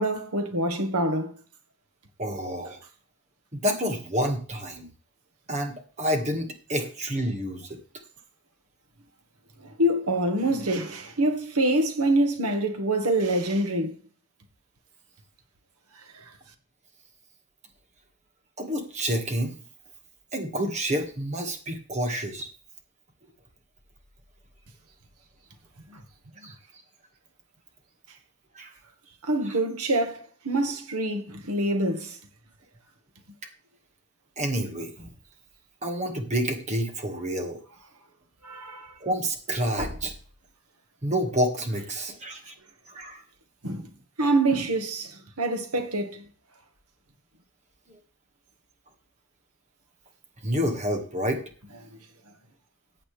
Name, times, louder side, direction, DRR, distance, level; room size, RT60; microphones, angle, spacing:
voice 1, 0.0-1.3 9.8-13.9 16.1-16.2 25.9-26.0 29.2-32.2 38.4-38.9 43.6-43.9 44.2-46.2, right 1 dB, 90° right, 1.8 m, -25 dB
voice 2, 2.2-2.8 3.5-4.9 5.5-7.8 18.6-19.5 20.3-22.5 26.4-26.5 28.6-28.7 34.4-35.1 35.8-37.6 39.0-40.1 41.0-42.5 42.9-43.2 50.4-51.4, equal, 30° right, 1.9 m, -28 dB
14.5 x 8.8 x 3.4 m
head